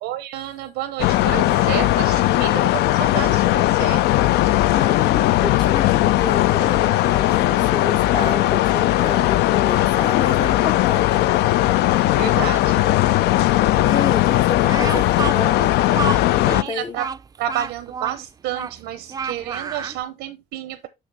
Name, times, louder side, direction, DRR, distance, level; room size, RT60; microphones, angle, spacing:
voice 1, 0.0-4.0 12.2-12.8 16.5-17.1 17.4-20.9, right 12 dB, 90° right, 0.6 m, -30 dB
sound 1, 1.0-16.6, left 15 dB, 80° left, 0.4 m, -18 dB
voice 2, 4.7-11.5 13.8-15.9 16.2-17.0, left 5 dB, 30° left, 0.5 m, -29 dB
Speech, 14.6-20.0, right 6 dB, 20° right, 0.3 m, -30 dB
6.2 x 6.0 x 3.3 m
cardioid pair, 110°, 17 cm